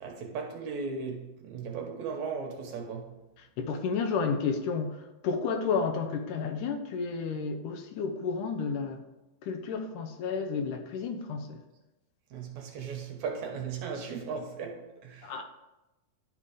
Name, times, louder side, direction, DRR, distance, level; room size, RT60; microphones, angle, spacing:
voice 1, 0.0-3.1 12.3-15.3, right 5 dB, 70° right, 2.1 m, -37 dB
voice 2, 3.6-5.0 5.2-9.0 9.5-11.6 15.2-15.4, left 5 dB, 75° left, 2.2 m, -31 dB
11.0 x 3.7 x 4.9 m
omnidirectional pair, 3.7 m